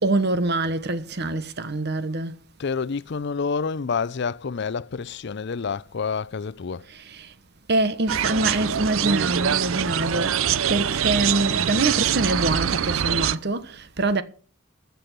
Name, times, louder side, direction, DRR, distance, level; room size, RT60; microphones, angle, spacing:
voice 1, 0.0-2.4 6.9-7.3 7.7-14.2, right 2 dB, 55° right, 1.2 m, -25 dB
voice 2, 2.6-6.9, left 5 dB, 55° left, 0.5 m, -28 dB
sound 1, 8.1-13.4, right 9 dB, 75° right, 0.5 m, -24 dB
13.5 x 6.9 x 8.2 m
head